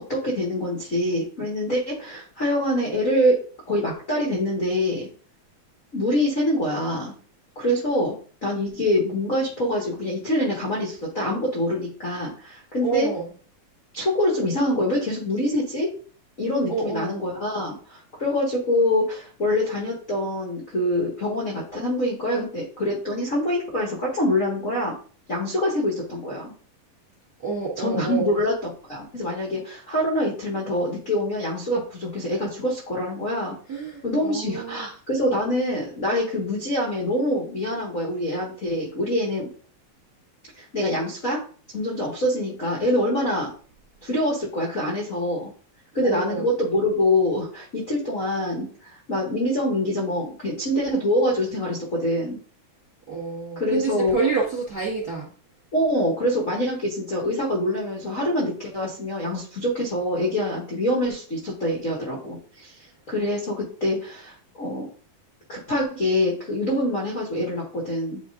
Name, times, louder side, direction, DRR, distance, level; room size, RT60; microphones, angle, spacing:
voice 1, 0.1-3.4 3.7-5.1 5.9-7.1 7.5-8.1 8.4-13.1 13.9-15.9 16.4-24.9 25.3-26.5 27.8-33.5 34.0-39.5 40.5-41.4 41.7-43.5 44.0-45.5 45.9-52.4 53.5-54.1 55.7-62.7 63.1-64.9 65.5-68.2, left 1 dB, 45° left, -3 dB, 1.0 m, -25 dB
voice 2, 12.8-13.3 16.7-17.2 27.4-28.4 33.7-34.9 46.0-46.5 53.1-55.3, right 5 dB, 40° right, -3 dB, 1.5 m, -28 dB
9.7 x 4.4 x 2.5 m, 0.41 s
omnidirectional pair, 4.2 m